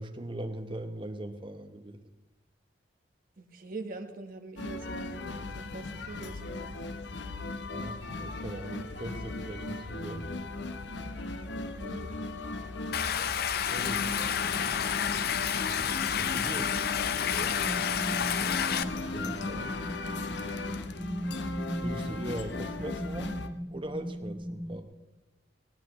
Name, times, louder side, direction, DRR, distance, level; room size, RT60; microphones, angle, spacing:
voice 1, 0.0-2.0 7.7-10.3 13.7-14.1 16.2-16.8 19.1-19.7 21.8-23.4 23.7-24.9, right 1 dB, 30° right, 6 dB, 1.0 m, -40 dB
voice 2, 3.4-5.2 5.5-6.8 11.2-12.2 13.9-14.4 17.4-18.7 19.5-19.6, right 2 dB, 50° right, 5 dB, 1.3 m, -44 dB
sound 1, 4.6-23.5, left 2 dB, 85° left, 0.9 m, -37 dB
Stream, 12.9-18.8, left 8 dB, 60° left, 0.5 m, -30 dB
sound 2, 17.3-24.8, equal, ahead, 0.7 m, -38 dB
19.5 x 16.0 x 3.1 m, 1.0 s
head